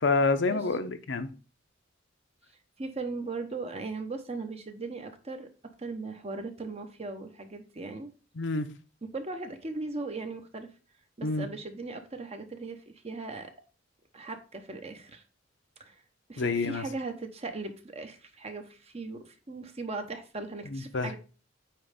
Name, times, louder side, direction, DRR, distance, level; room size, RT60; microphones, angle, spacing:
voice 1, 0.0-1.3 8.4-8.7 11.2-11.5 16.4-16.8 20.7-21.1, left 3 dB, 65° left, 0.7 m, -27 dB
voice 2, 2.8-5.5 5.8-8.1 9.0-10.7 11.2-12.8 13.0-13.5 14.1-15.2 15.8-16.0 16.3-21.2, right 3 dB, 35° right, 1.0 m, -38 dB
8.9 x 3.2 x 5.1 m
head